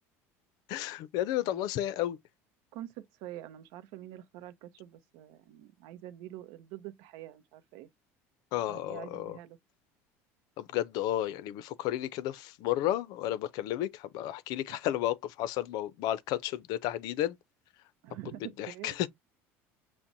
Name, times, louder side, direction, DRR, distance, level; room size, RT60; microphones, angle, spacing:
voice 1, 0.7-2.2 8.5-9.4 10.6-17.4 18.6-19.1, left 13 dB, 65° left, 0.4 m, -32 dB
voice 2, 2.7-7.9 8.7-9.6 14.7-14.8 18.0-19.0, right 13 dB, 70° right, 0.6 m, -46 dB
5.8 x 2.1 x 2.6 m
supercardioid pair, 85°, 7 cm